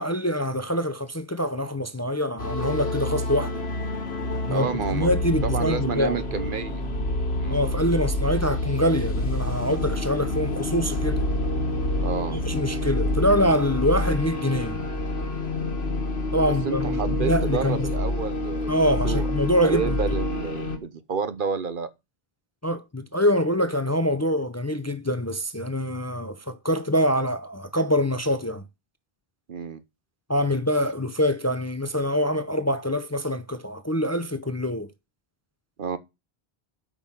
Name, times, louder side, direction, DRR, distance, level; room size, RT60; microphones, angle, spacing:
voice 1, 0.0-3.6 4.5-6.2 7.5-11.3 12.3-14.8 16.3-17.9 18.7-20.0 22.6-28.6 30.3-34.9, equal, 20° left, 0.6 m, -25 dB
sound 1, 2.4-20.8, left 1 dB, 80° left, 1.8 m, -27 dB
voice 2, 4.5-5.1 5.4-6.8 7.3-7.6 12.0-12.4 16.4-18.7 19.0-19.3 19.6-21.9 29.5-29.8 35.8-36.0, right 5 dB, 55° right, 1.0 m, -30 dB
8.3 x 5.8 x 7.5 m
omnidirectional pair, 1.0 m